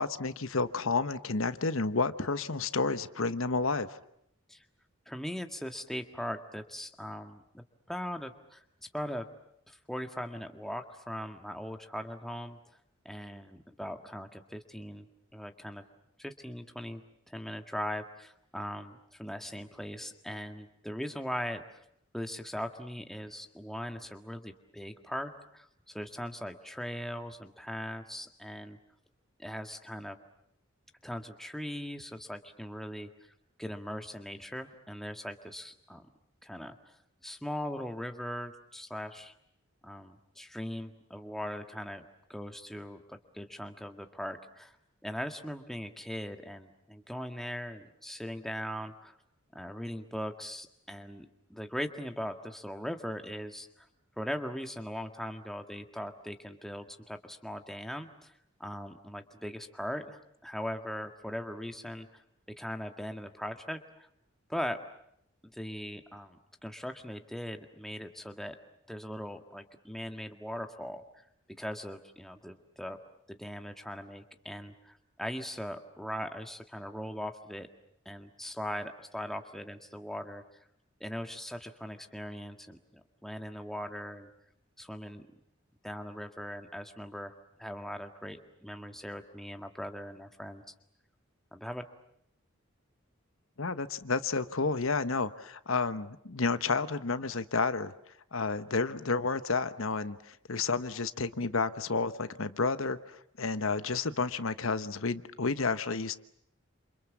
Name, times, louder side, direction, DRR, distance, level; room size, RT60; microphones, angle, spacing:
voice 1, 0.0-4.0 93.6-97.9 98.3-106.1, left 4 dB, 70° left, 12 dB, 1.1 m, -31 dB
voice 2, 5.1-8.6 8.9-9.3 9.7-12.6 13.1-15.1 15.3-15.8 16.2-21.8 22.1-28.8 29.4-30.2 31.0-33.1 33.6-36.1 36.4-36.8 37.2-39.3 39.8-44.8 45.0-49.1 49.5-53.9 54.2-58.3 58.6-62.2 62.5-64.1 64.5-64.8 65.4-68.6 68.9-73.0 73.3-77.7 78.1-80.4 81.0-84.3 84.8-85.3 85.8-90.6 91.5-91.8, equal, ahead, 5 dB, 1.7 m, -40 dB
28.5 x 28.0 x 7.4 m, 0.74 s
head